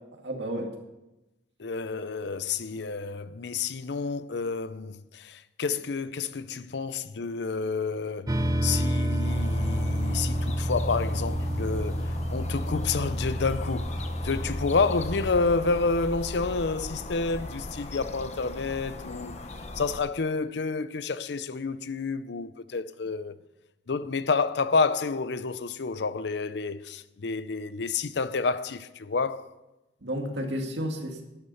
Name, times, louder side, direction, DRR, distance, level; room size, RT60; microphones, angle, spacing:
voice 1, 0.2-0.7 30.0-31.2, equal, 75° right, 2.1 m, -31 dB
voice 2, 1.6-19.4 19.7-23.3 23.9-29.5, left 4 dB, 65° left, 0.6 m, -29 dB
sound 1, 8.3-15.3, equal, 20° right, 0.7 m, -29 dB
sound 2, 9.2-20.0, left 2 dB, 40° left, 0.9 m, -38 dB
12.0 x 9.6 x 5.6 m
head